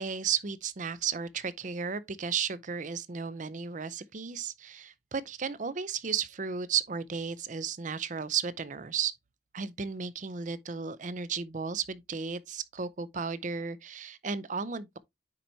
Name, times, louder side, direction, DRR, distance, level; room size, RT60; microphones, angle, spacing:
voice 1, 0.0-9.1 9.5-15.0, right 6 dB, 40° right, 0.5 m, -34 dB
9.7 x 4.4 x 2.7 m
head